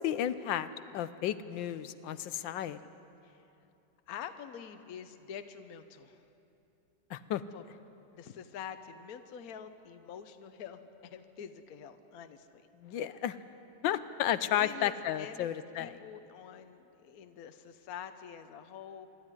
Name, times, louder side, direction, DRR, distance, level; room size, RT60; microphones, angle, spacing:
voice 1, 0.0-2.8 7.1-7.4 12.8-13.4 13.8-16.0, left 11 dB, 90° left, 14 dB, 1.4 m, -33 dB
voice 2, 4.1-6.2 7.5-7.6 8.1-12.6 14.5-15.5 15.8-19.1, left 8 dB, 60° left, 9 dB, 1.2 m, -46 dB
25.5 x 12.5 x 9.7 m, 2.8 s
omnidirectional pair, 2.0 m